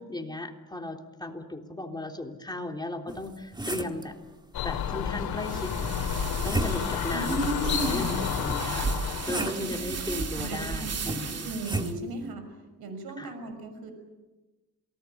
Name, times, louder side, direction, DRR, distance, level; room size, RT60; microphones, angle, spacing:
voice 1, 0.0-4.1 4.6-5.7 6.4-11.5 13.2-13.3, left 2 dB, 10° left, 3 dB, 3.5 m, -36 dB
sound 1, 3.1-4.1 5.8-7.1 8.5-9.8 11.1-12.0, right 2 dB, 10° right, 1.9 m, -34 dB
sound 2, 4.5-9.5, left 8 dB, 75° left, 2.8 m, -31 dB
sound 3, 5.4-11.9, right 5 dB, 40° right, 2.5 m, -36 dB
voice 2, 7.1-8.0 9.3-9.5 10.0-12.4 12.8-13.9, right 2 dB, 75° right, 8 dB, 6.2 m, -34 dB
28.0 x 19.5 x 8.7 m, 1.2 s
cardioid pair, 90°, 37 cm